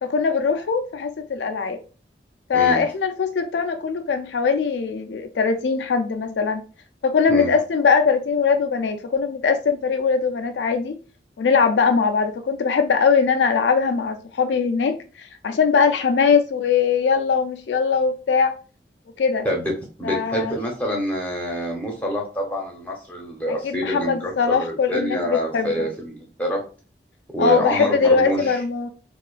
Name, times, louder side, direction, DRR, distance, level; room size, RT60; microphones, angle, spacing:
voice 1, 0.0-1.8 2.5-6.6 7.0-11.0 11.4-18.5 19.2-19.5 20.0-20.6 23.6-25.9 27.4-28.9, left 5 dB, 85° left, 0.4 m, -21 dB
voice 2, 20.0-26.6 27.3-28.6, equal, 10° left, 0.8 m, -26 dB
4.2 x 2.4 x 2.4 m
head